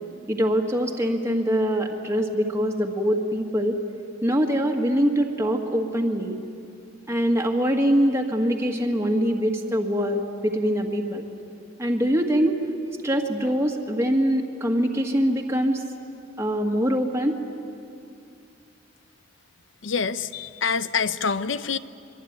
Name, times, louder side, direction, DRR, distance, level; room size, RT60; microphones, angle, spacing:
voice 1, 0.3-3.8 4.2-6.4 7.1-11.3 11.8-12.6 13.0-15.8 16.4-17.4, equal, 15° right, 1 dB, 1.7 m, -23 dB
voice 2, 19.8-21.8, left 5 dB, 80° left, 14 dB, 0.8 m, -26 dB
24.5 x 23.5 x 9.5 m, 2.5 s
head